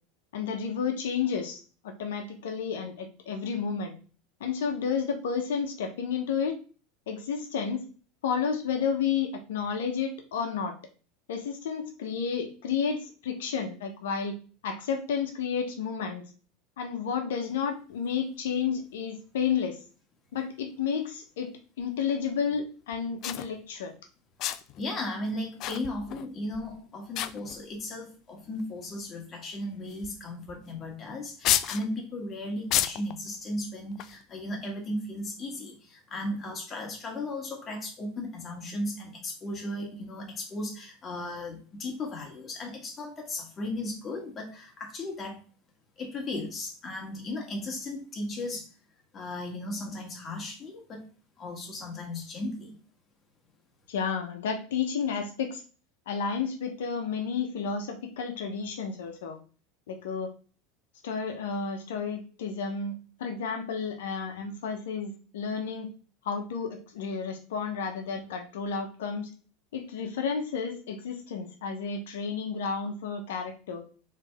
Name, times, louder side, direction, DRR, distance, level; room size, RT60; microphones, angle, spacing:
voice 1, 0.3-3.9 4.4-6.6 7.1-7.8 8.2-10.7 11.3-14.3 14.6-16.2 16.8-19.8 20.3-21.5 21.8-23.9 53.9-55.6 56.1-59.4 59.9-60.3 61.0-62.9 63.2-65.9 66.2-69.3 69.7-73.8, left 6 dB, 80° left, 5 dB, 0.9 m, -31 dB
sound 1, 21.8-21.9 22.9-23.0 23.2-23.5 24.4-24.8 25.6-26.3 26.5-26.8 27.1-27.8 28.6-28.7 29.9-30.1 30.5-30.6 31.4-31.8 32.7-33.1 33.9-34.2, left 12 dB, 50° left, 0.3 m, -30 dB
voice 2, 24.8-45.4 46.0-48.7 49.1-51.1 51.4-52.8, left 1 dB, 35° left, 1 dB, 1.7 m, -36 dB
3.3 x 3.3 x 3.5 m, 0.37 s
hypercardioid pair, 100°, 0 cm